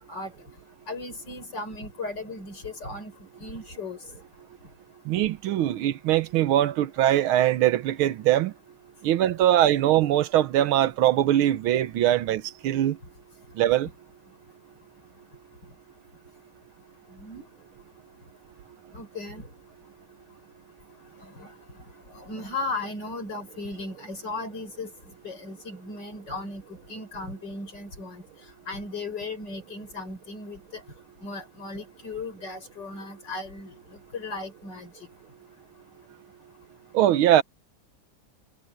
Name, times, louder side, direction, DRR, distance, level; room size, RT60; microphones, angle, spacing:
voice 1, 0.9-3.1 3.4-4.0 17.2-17.5 18.9-19.4 21.4-21.5 22.1-24.9 25.2-26.6 26.9-28.2 28.7-30.8 31.2-33.7 34.1-34.9, left 3 dB, 55° left, 6.2 m, -36 dB
voice 2, 5.1-8.5 9.0-13.0 13.6-13.9 36.9-37.4, right 12 dB, 90° right, 1.7 m, -22 dB
omnidirectional pair, 2.2 m